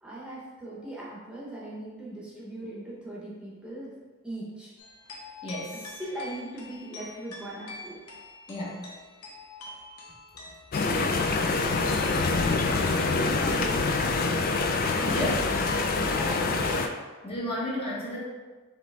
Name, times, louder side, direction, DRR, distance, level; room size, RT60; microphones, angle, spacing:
voice 1, 0.0-4.0 4.2-4.7 6.0-8.0 13.4-14.1 15.9-16.8, right 1 dB, 5° right, -7 dB, 0.8 m, -39 dB
sound 1, 4.8-13.3, left 2 dB, 85° left, 0.9 m, -45 dB
voice 2, 5.4-5.7 8.5-8.9 14.9-15.6 17.2-18.2, equal, 25° left, -5 dB, 0.8 m, -32 dB
sound 2, 10.7-16.9, left 3 dB, 40° left, 0.3 m, -25 dB
5.0 x 3.1 x 3.3 m, 1.3 s
head